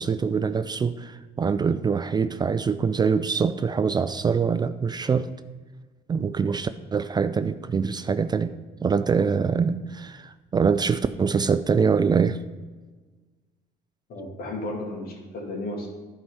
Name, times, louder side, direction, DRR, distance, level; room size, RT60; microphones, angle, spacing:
voice 1, 0.0-5.3 6.1-8.5 8.8-12.4, right 5 dB, 25° right, 11 dB, 0.4 m, -24 dB
voice 2, 14.1-15.9, left 1 dB, 65° left, 0 dB, 2.5 m, -33 dB
11.5 x 4.8 x 5.5 m, 1.3 s
cardioid pair, 110°, 17 cm